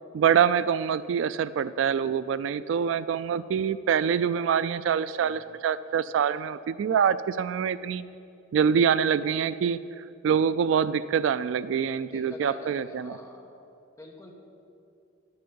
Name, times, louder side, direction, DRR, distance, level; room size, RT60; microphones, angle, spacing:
voice 1, 0.1-8.0 8.5-13.2, right 7 dB, 70° right, 16 dB, 0.3 m, -25 dB
voice 2, 12.0-13.6 14.0-14.3, left 1 dB, 15° left, 0 dB, 1.3 m, -45 dB
10.5 x 6.8 x 7.0 m, 2.6 s
head